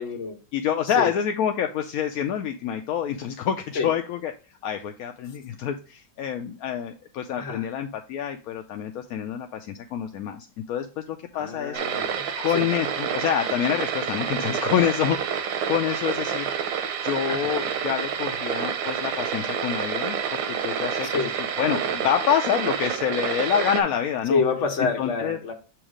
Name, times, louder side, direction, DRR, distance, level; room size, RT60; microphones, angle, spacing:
voice 1, 0.0-0.4 1.0-1.1 3.7-3.9 7.4-7.7 11.3-12.2 12.5-12.7 17.3-17.5 21.0-21.3 24.3-25.5, left 4 dB, 45° left, 3 dB, 1.4 m, -27 dB
voice 2, 0.5-4.3 4.6-11.8 12.4-16.5 17.0-24.4 24.8-25.5, left 9 dB, 70° left, 5 dB, 0.9 m, -27 dB
sound 1, 11.7-23.8, right 7 dB, 90° right, 1.5 m, -28 dB
7.1 x 3.0 x 4.9 m, 0.36 s
omnidirectional pair, 1.9 m